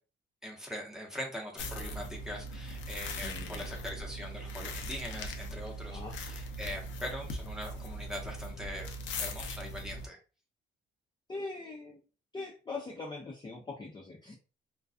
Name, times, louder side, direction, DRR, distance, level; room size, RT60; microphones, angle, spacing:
voice 1, 0.4-8.9 9.2-10.2, equal, ahead, 0 dB, 0.8 m, -42 dB
sound 1, 1.6-10.1, equal, 75° left, 0.5 m, -40 dB
voice 2, 3.2-3.7 5.9-6.2 11.3-12.0 12.3-14.3, left 3 dB, 20° left, -2 dB, 0.5 m, -41 dB
2.3 x 2.2 x 2.5 m, 0.34 s
cardioid pair, 90°, 20 cm